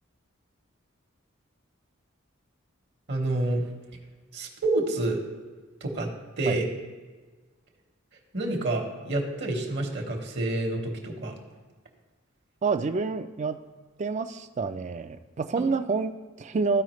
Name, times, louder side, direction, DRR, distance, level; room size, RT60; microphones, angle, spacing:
voice 1, 3.1-3.6 4.3-5.2 5.8-6.1 6.4-6.6 8.3-11.3, right 2 dB, 55° right, 2 dB, 1.1 m, -28 dB
voice 2, 12.6-13.6 14.0-16.8, right 4 dB, 35° right, 10 dB, 0.4 m, -28 dB
13.5 x 4.8 x 3.1 m, 1.4 s
head